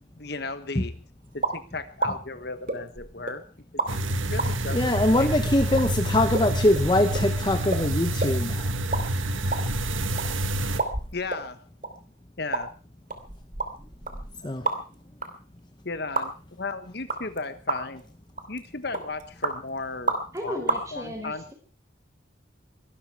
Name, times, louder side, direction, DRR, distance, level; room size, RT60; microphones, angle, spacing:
voice 1, 0.2-0.9 1.3-3.4 3.9-4.0 4.3-4.9 5.2-5.3 11.1-11.6 12.4-12.7 15.8-18.0 18.5-20.6 20.9-21.5, left 3 dB, 55° left, 11 dB, 1.3 m, -35 dB
sound 1, 1.4-1.6 2.0-2.1 2.7-3.3 3.8-3.9 4.4-4.5 5.2-5.3 5.8-5.9 6.3-6.5 6.7-6.8 7.1-7.3 7.7-7.8 8.2-8.4 8.7-9.0 9.3-10.3 10.8-11.4 11.8-11.9 12.5-12.6 13.1-14.9 15.2-15.3 16.1-16.3 17.1-17.4 17.7-18.0 18.4-18.6 18.9-19.5 20.1-20.4 20.7-20.8, right 3 dB, 45° right, 2.8 m, -29 dB
sound 2, 3.9-10.8, right 1 dB, 85° right, 1.7 m, -27 dB
voice 2, 4.7-8.7 14.4-14.7, left 1 dB, 20° left, 8 dB, 0.9 m, -23 dB
voice 3, 20.3-21.5, equal, 15° right, 4 dB, 4.8 m, -35 dB
23.0 x 13.0 x 4.8 m, 0.37 s
head